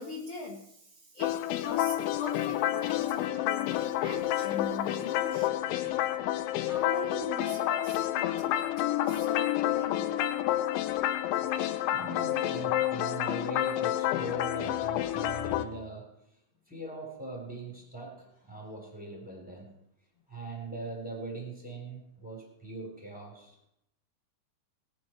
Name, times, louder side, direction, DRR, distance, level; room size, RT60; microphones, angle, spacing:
voice 1, 0.0-5.6 6.7-10.3, left 3 dB, 60° left, -2 dB, 1.5 m, -41 dB
sound 1, 1.2-15.7, left 13 dB, 80° left, 3.1 m, -29 dB
voice 2, 11.9-16.1 16.7-19.8 20.3-23.6, right 2 dB, ahead, 0 dB, 3.0 m, -41 dB
20.0 x 10.0 x 4.6 m, 0.78 s
omnidirectional pair, 5.5 m